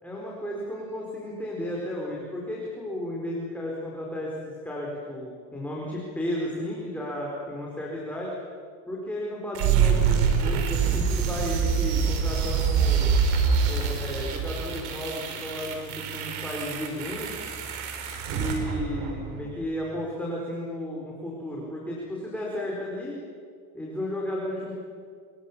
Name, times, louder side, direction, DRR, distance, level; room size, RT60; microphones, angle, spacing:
voice 1, 0.0-8.3 8.9-13.1 13.6-17.4 18.3-23.2 23.7-24.7, left 1 dB, 5° left, -4 dB, 4.4 m, -33 dB
sound 1, 9.5-19.5, right 6 dB, 80° right, 4.6 m, -26 dB
28.0 x 23.0 x 7.3 m, 2.2 s
cardioid pair, 145°, 37 cm